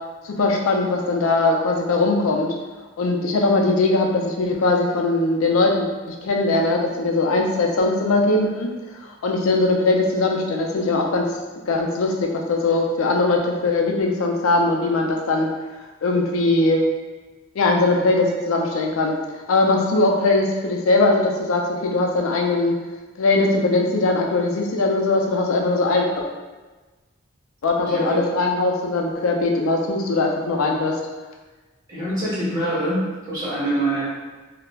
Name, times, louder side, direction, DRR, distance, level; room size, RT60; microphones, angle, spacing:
voice 1, 0.4-2.5 3.0-8.7 9.2-11.2 11.7-15.5 16.0-16.8 17.6-19.2 19.5-22.7 23.2-26.2 27.6-31.0, left 2 dB, 75° left, 1 dB, 0.4 m, -20 dB
voice 2, 27.8-28.2 31.9-34.1, right 1 dB, 15° right, -10 dB, 0.8 m, -25 dB
2.3 x 2.0 x 3.3 m, 1.3 s
head